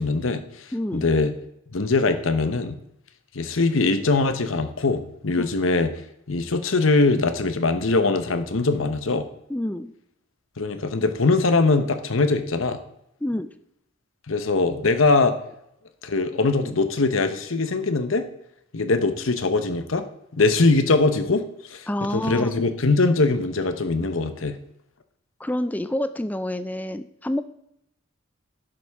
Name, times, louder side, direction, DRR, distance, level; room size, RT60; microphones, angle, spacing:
voice 1, 0.0-1.3 1.7-2.8 3.3-5.9 6.3-9.3 10.6-12.8 14.3-15.4 16.0-18.3 18.7-20.0 20.3-21.9 22.1-24.6, left 3 dB, 90° left, 9 dB, 1.0 m, -22 dB
voice 2, 0.7-1.1 5.4-5.5 9.5-9.9 13.2-13.5 21.9-22.5 25.4-27.4, left 1 dB, 10° left, 12 dB, 0.4 m, -27 dB
11.0 x 7.7 x 3.6 m, 0.78 s
head